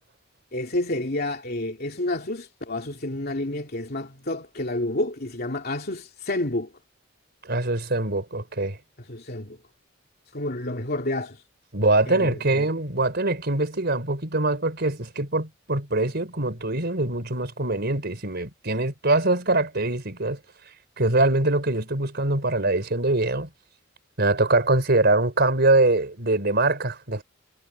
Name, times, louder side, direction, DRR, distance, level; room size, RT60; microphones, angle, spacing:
voice 1, 0.5-6.7 9.0-9.6 10.3-11.4 12.1-12.7, left 1 dB, 50° left, 2.8 m, -29 dB
voice 2, 7.4-8.8 11.7-20.4 21.0-23.5 24.2-27.2, right 2 dB, 55° right, 4.3 m, -23 dB
head